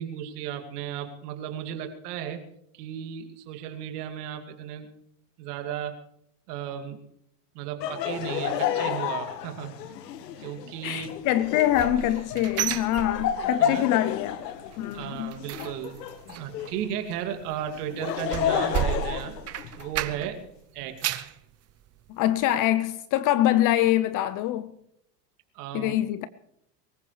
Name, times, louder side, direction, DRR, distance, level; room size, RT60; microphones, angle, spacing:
voice 1, 0.0-2.4 2.7-4.9 5.4-6.0 6.5-7.0 7.5-9.7 10.4-11.1 13.6-14.0 14.9-16.0 16.3-19.4 19.8-20.5 20.7-21.2 25.5-26.0, right 9 dB, 70° right, 2.5 m, -35 dB
Laughter, 7.8-16.9 17.7-20.1, left 9 dB, 85° left, 1.5 m, -31 dB
voice 2, 10.8-14.4 14.8-15.3 22.1-24.7 25.7-26.3, left 13 dB, 40° left, 0.7 m, -24 dB
sound 1, 11.4-13.7 14.0-14.4 14.7-20.5 20.8-21.4 21.9-22.0 22.4-22.5, right 12 dB, 30° right, 0.9 m, -33 dB
23.5 x 15.0 x 3.3 m
supercardioid pair, 110°, 48 cm